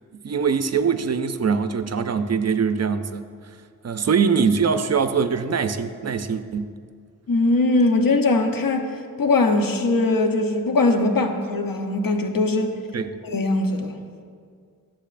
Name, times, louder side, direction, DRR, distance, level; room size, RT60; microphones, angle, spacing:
voice 1, 0.2-3.3 3.8-6.7 12.9-13.2, right 6 dB, 45° right, 10 dB, 0.5 m, -22 dB
voice 2, 7.3-8.9 9.2-12.7 13.2-14.0, left 2 dB, 70° left, 5 dB, 0.9 m, -21 dB
13.5 x 7.3 x 2.5 m, 2.1 s
wide cardioid pair, 80°, 35 cm